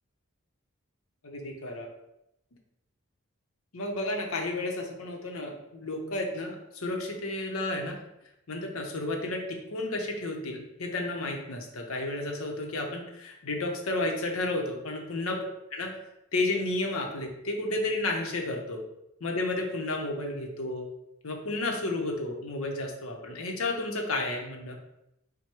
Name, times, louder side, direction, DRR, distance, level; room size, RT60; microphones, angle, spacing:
voice 1, 1.2-1.9 3.7-8.0 8.5-15.4 15.7-15.9 16.3-18.8 19.2-20.9 21.2-24.8, left 2 dB, 90° left, 2 dB, 0.8 m, -32 dB
4.7 x 2.2 x 4.4 m, 0.85 s
head